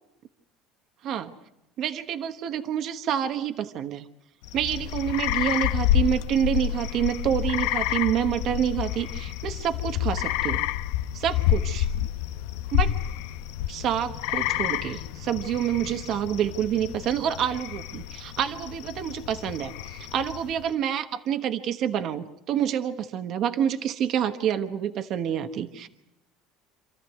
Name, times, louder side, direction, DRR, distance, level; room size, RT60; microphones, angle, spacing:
voice 1, 1.8-4.0 4.5-10.7 11.1-11.9 12.7-12.9 13.7-25.9, right 9 dB, 50° right, 7 dB, 1.3 m, -28 dB
sound 1, 4.4-20.7, left 12 dB, 85° left, 0.8 m, -29 dB
27.5 x 14.0 x 9.4 m, 0.86 s
cardioid pair, 135°, 0 cm